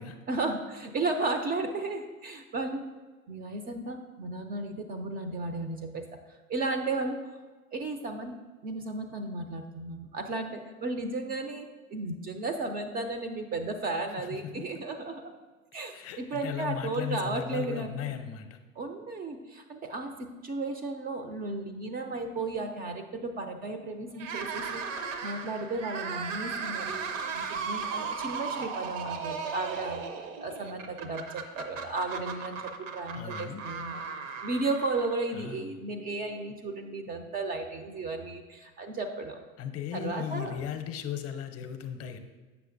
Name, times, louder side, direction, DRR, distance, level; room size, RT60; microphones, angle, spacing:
voice 1, 0.3-2.8 3.3-6.0 6.5-7.2 7.7-8.4 8.6-15.3 15.7-18.1 18.8-30.0 30.4-34.0 34.4-39.5 39.9-40.6, right 3 dB, 25° right, 7 dB, 0.4 m, -34 dB
voice 2, 14.2-14.8 15.9-18.6 33.1-33.6 35.3-35.8 39.6-42.2, left 9 dB, 35° left, 8 dB, 0.6 m, -37 dB
sound 1, 24.1-35.4, right 5 dB, 65° right, 0.8 m, -36 dB
7.7 x 5.8 x 2.5 m, 1.3 s
hypercardioid pair, 80°, 41 cm